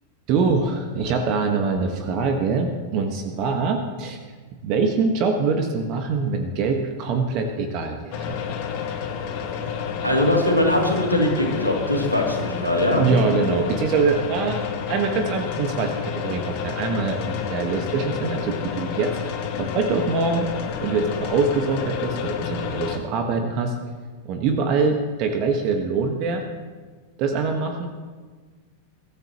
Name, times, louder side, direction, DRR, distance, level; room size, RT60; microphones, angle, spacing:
voice 1, 0.3-4.2 4.6-8.4 13.0-19.1 19.6-20.5 20.8-23.7 24.2-26.4 27.2-27.9, right 4 dB, 40° right, 4 dB, 1.6 m, -24 dB
sound 1, 8.1-23.0, left 7 dB, 45° left, 1.9 m, -30 dB
voice 2, 10.0-13.0, left 1 dB, 90° right, -1 dB, 2.9 m, -21 dB
22.5 x 13.5 x 3.1 m, 1.5 s
figure-of-eight pair, 90°, 0 cm